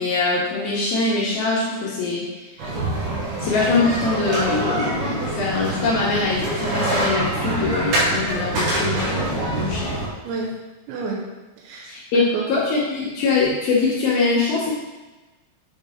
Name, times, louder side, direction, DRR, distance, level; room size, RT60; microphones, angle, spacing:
voice 1, 0.0-2.5 3.4-10.0 11.9-14.7, left 3 dB, 75° left, -5 dB, 2.4 m, -23 dB
sound 1, 2.6-10.1, right 2 dB, 70° right, 3.2 m, -25 dB
voice 2, 10.2-10.6 10.9-11.3 11.6-12.6, right 3 dB, 85° right, 0 dB, 3.3 m, -30 dB
7.7 x 4.2 x 3.5 m, 1.2 s
omnidirectional pair, 5.1 m